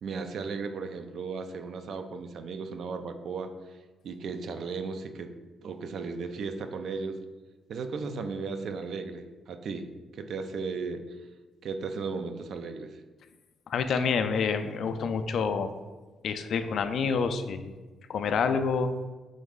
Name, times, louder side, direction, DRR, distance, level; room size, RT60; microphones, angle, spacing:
voice 1, 0.0-3.8 4.0-5.3 5.6-7.2 7.7-9.9 10.1-11.0 11.6-13.0 13.9-14.0, right 4 dB, 65° right, 8 dB, 0.4 m, -35 dB
voice 2, 13.7-15.7 16.2-17.7 18.1-18.9, left 5 dB, 65° left, 9 dB, 0.3 m, -28 dB
3.8 x 3.1 x 3.6 m, 1.2 s
cardioid pair, 90°, 0 cm